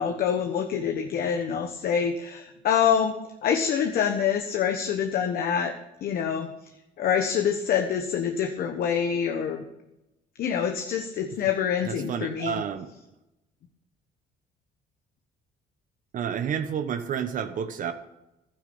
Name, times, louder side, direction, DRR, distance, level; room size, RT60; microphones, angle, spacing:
voice 1, 0.0-5.7 6.0-6.5 7.0-9.6 10.4-12.6, left 8 dB, 65° left, 5 dB, 1.2 m, -26 dB
voice 2, 11.8-12.9 16.1-17.9, right 8 dB, 50° right, 9 dB, 0.9 m, -30 dB
12.0 x 10.5 x 5.5 m, 0.92 s
cardioid pair, 110°, 17 cm